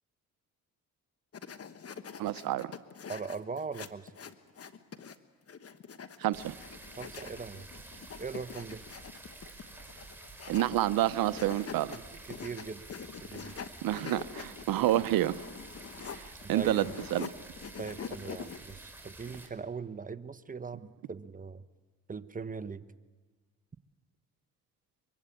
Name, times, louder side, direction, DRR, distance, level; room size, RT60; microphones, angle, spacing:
sound 1, 1.3-5.2 5.5-10.9 11.2-12.0 12.3-17.3 17.6-18.6, left 6 dB, 45° left, 1.4 m, -44 dB
voice 1, 2.2-2.7 6.2-6.5 10.5-12.0 13.8-15.4 16.0-16.8 17.1-17.3, right 14 dB, 80° right, 15 dB, 0.8 m, -29 dB
voice 2, 3.1-4.1 7.0-7.7 8.2-8.8 11.9-12.8 13.2-13.6 16.4-17.0 17.8-21.6 22.1-22.8, right 5 dB, 25° right, 12 dB, 1.0 m, -40 dB
sound 2, 6.3-19.5, right 2 dB, 5° right, 4.4 m, -50 dB
24.0 x 22.5 x 8.6 m, 1.3 s
cardioid pair, 80°, 34 cm